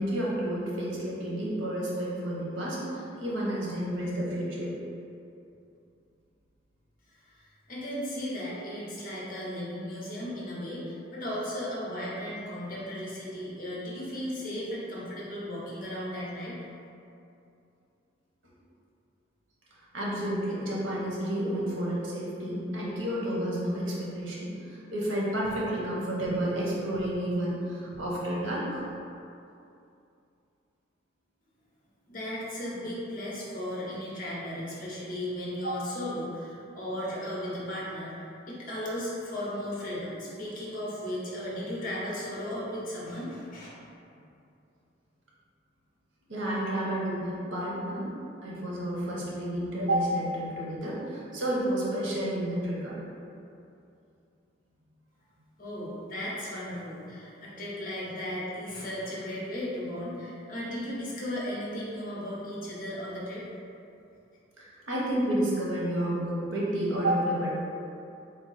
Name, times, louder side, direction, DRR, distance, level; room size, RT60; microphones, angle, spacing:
voice 1, 0.0-4.7 19.9-28.8 35.6-35.7 46.3-48.1 48.4-53.0 64.6-67.6, right 1 dB, 90° right, -5 dB, 0.9 m, -30 dB
voice 2, 7.3-16.6 32.1-43.7 55.6-63.4, left 1 dB, 45° left, -6 dB, 0.9 m, -36 dB
3.8 x 2.2 x 4.0 m, 2.6 s
head